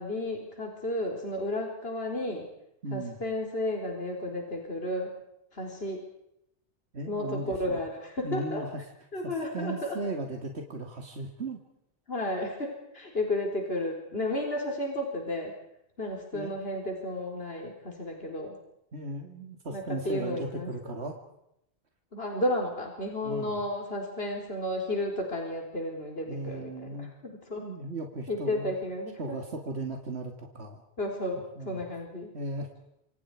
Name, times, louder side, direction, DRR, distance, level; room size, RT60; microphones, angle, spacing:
voice 1, 0.0-2.5 2.9-5.1 5.5-6.0 7.1-8.6 9.1-10.0 12.1-15.5 16.0-18.6 19.7-20.7 22.1-27.7 28.3-29.4 31.0-32.3, left 1 dB, 60° left, 1 dB, 4.5 m, -33 dB
voice 2, 2.8-3.2 6.9-7.8 8.2-8.8 9.2-11.6 16.3-16.5 18.9-21.1 23.2-23.6 26.3-27.1 27.5-28.7 29.2-30.8 31.6-31.8 32.3-32.7, right 2 dB, 70° right, 3 dB, 2.7 m, -36 dB
28.0 x 26.0 x 4.9 m, 0.80 s
omnidirectional pair, 1.1 m